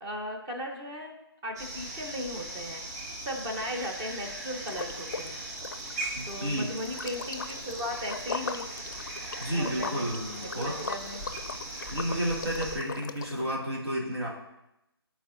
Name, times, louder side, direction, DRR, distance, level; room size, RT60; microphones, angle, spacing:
voice 1, 0.0-1.1 1.4-5.4 6.2-8.7 9.5-10.1 10.6-11.2, left 1 dB, 10° right, 1 dB, 0.7 m, -37 dB
sound 1, 1.6-12.8, right 2 dB, 40° right, 1.4 m, -39 dB
Liquid, 4.6-5.3 5.6-13.5, left 5 dB, 50° left, 0.5 m, -39 dB
voice 2, 6.2-6.7 9.4-10.8 11.9-14.3, equal, 75° right, -4 dB, 2.3 m, -31 dB
12.5 x 4.3 x 2.7 m, 0.87 s
figure-of-eight pair, 155°, 13 cm